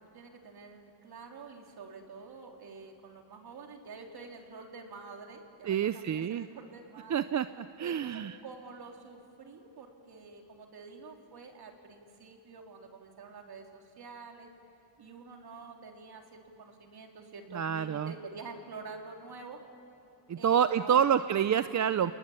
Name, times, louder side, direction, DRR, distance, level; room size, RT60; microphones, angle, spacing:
voice 1, 0.0-7.2 7.8-14.5 15.0-19.6 20.4-21.3, right 4 dB, 55° right, 2 dB, 3.7 m, -48 dB
voice 2, 5.6-6.5 7.1-8.4 17.5-18.1 20.3-22.1, right 8 dB, 40° right, 12 dB, 0.6 m, -28 dB
30.0 x 20.0 x 10.0 m, 2.7 s
cardioid pair, 120°, 44 cm